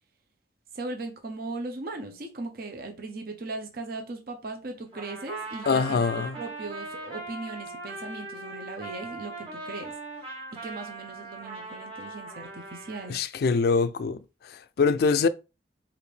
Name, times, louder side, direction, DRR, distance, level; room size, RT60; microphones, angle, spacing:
voice 1, 0.7-9.9 10.5-13.2, right 3 dB, 55° right, 0.7 m, -38 dB
Trumpet, 4.9-13.1, right 2 dB, 35° right, 1.7 m, -40 dB
voice 2, 5.7-6.4 13.1-14.2 14.4-15.3, left 4 dB, 60° left, 0.3 m, -24 dB
4.9 x 2.5 x 3.2 m
head